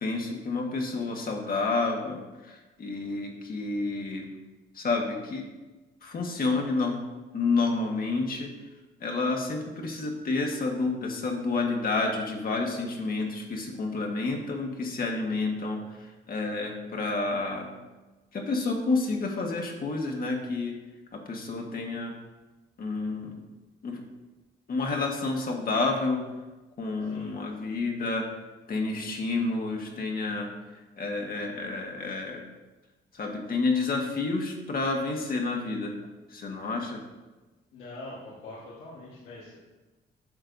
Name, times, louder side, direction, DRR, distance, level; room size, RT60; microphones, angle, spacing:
voice 1, 0.0-4.3 4.7-5.5 6.0-7.0 7.3-8.5 9.0-17.7 18.3-20.7 21.1-22.1 22.8-23.4 23.8-24.0 24.7-26.2 26.8-28.3 28.7-30.5 31.0-32.4 33.1-36.0 36.3-37.0, left 3 dB, 45° left, 1 dB, 1.4 m, -29 dB
voice 2, 27.0-27.4 37.7-39.6, left 2 dB, 85° left, -5 dB, 1.4 m, -43 dB
9.7 x 6.3 x 2.6 m, 1.2 s
cardioid pair, 85°, 20 cm